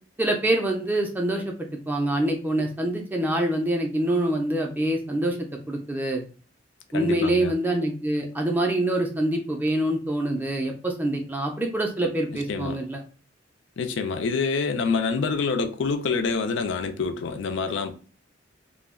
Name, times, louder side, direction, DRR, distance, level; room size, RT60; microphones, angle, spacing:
voice 1, 0.2-1.5 1.9-6.2 6.9-13.0, right 1 dB, 10° right, 0.4 m, -25 dB
voice 2, 6.9-7.5 12.5-12.8 13.8-17.9, left 4 dB, 70° left, 0.4 m, -26 dB
2.2 x 2.1 x 3.5 m
head